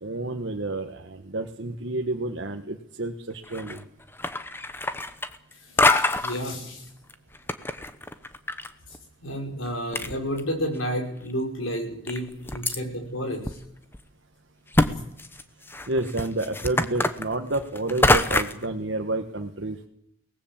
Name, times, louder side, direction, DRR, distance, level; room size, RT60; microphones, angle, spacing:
voice 1, 0.0-3.8 14.8-15.0 15.9-19.9, right 2 dB, 65° right, 4 dB, 1.4 m, -30 dB
sound 1, 3.4-3.8 4.1-5.5 5.8-6.4 7.1-8.7 8.9-9.0 9.7-9.8 9.9-10.8 11.3-11.4 12.1-12.8 13.5-13.6 13.9-14.0 14.7-14.9 15.2-18.7, left 2 dB, 10° left, 1.0 m, -24 dB
voice 2, 5.8-6.8 9.2-12.3 12.5-13.4, equal, 90° left, 3 dB, 6.0 m, -30 dB
23.0 x 19.0 x 7.4 m, 0.76 s
head